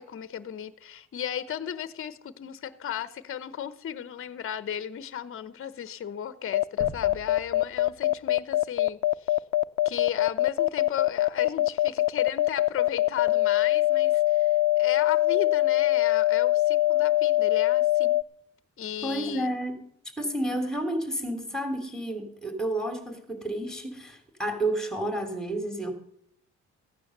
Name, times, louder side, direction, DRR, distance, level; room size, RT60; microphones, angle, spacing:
voice 1, 0.0-9.4 9.8-18.2 18.8-19.5, left 9 dB, 45° left, 14 dB, 0.9 m, -35 dB
sound 1, 6.5-18.2, left 17 dB, 75° left, 0.6 m, -23 dB
sound 2, 6.8-9.7, right 2 dB, 45° right, 2.1 m, -46 dB
voice 2, 19.0-19.9 20.2-25.9, right 1 dB, ahead, 6 dB, 3.3 m, -30 dB
15.5 x 9.5 x 6.7 m, 0.71 s
cardioid pair, 90°, 30 cm